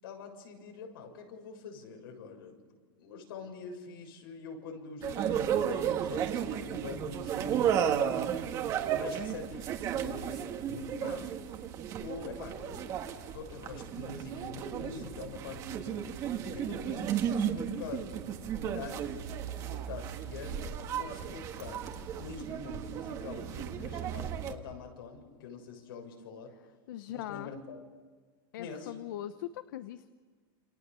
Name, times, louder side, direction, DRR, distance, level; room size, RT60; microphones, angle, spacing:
voice 1, 0.0-2.6 3.0-8.5 9.0-11.3 12.0-15.9 16.5-18.1 18.5-19.1 19.7-21.9 22.2-26.5 27.1-27.8 28.6-28.9, left 5 dB, 85° left, 3 dB, 7.0 m, -45 dB
sound 1, 5.0-24.5, right 9 dB, 30° right, 1.8 m, -34 dB
voice 2, 26.9-27.5 28.5-30.1, left 12 dB, 65° left, 11 dB, 1.0 m, -41 dB
28.5 x 27.5 x 7.0 m, 1.5 s
supercardioid pair, 170°, 12 cm